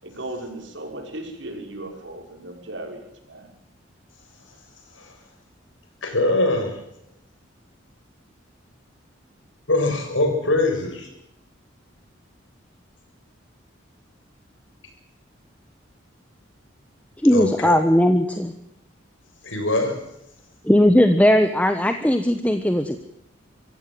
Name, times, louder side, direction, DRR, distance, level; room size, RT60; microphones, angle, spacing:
voice 1, 0.0-3.5, right 1 dB, 70° right, 3 dB, 6.0 m, -36 dB
voice 2, 6.0-6.8 9.7-11.1 17.3-17.8 19.4-20.0, left 2 dB, 75° left, 4 dB, 7.1 m, -22 dB
voice 3, 17.2-18.5 20.6-23.0, left 1 dB, 5° left, 7 dB, 1.2 m, -18 dB
25.5 x 16.0 x 7.9 m, 0.82 s
head